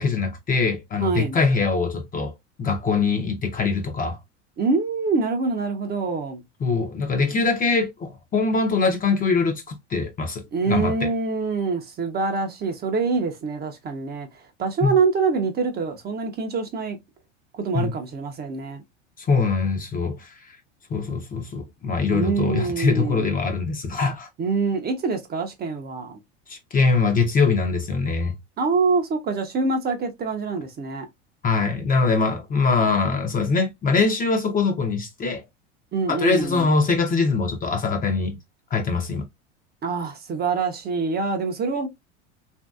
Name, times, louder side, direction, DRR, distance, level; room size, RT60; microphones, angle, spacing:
voice 1, 0.0-4.2 6.6-11.1 14.8-14.9 17.7-17.9 19.2-20.3 20.9-24.3 26.5-28.3 31.4-35.4 36.1-38.4 38.7-39.2, left 4 dB, 25° left, 0.6 m, -23 dB
voice 2, 1.0-1.4 4.6-6.4 10.5-17.0 17.5-18.8 22.1-23.3 24.4-26.2 28.6-31.1 35.9-36.7 39.8-41.9, right 4 dB, 25° right, 0.6 m, -25 dB
2.9 x 2.6 x 2.3 m
supercardioid pair, 105°, 36 cm